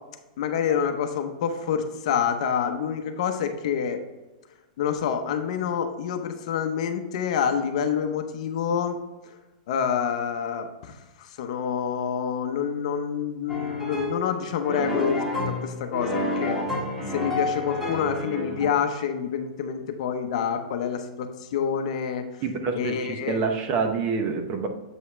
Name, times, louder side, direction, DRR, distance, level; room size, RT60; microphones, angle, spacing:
voice 1, 0.4-4.0 4.8-9.0 9.3-9.4 9.7-16.6 17.1-22.2 22.7-23.4, left 7 dB, 50° left, 7 dB, 0.8 m, -27 dB
sound 1, 13.5-14.2 14.6-18.7, left 1 dB, 5° right, 1.5 m, -29 dB
voice 2, 22.4-24.7, right 5 dB, 25° right, 5 dB, 0.8 m, -27 dB
7.9 x 5.6 x 3.2 m, 1.1 s
supercardioid pair, 165°, 4 cm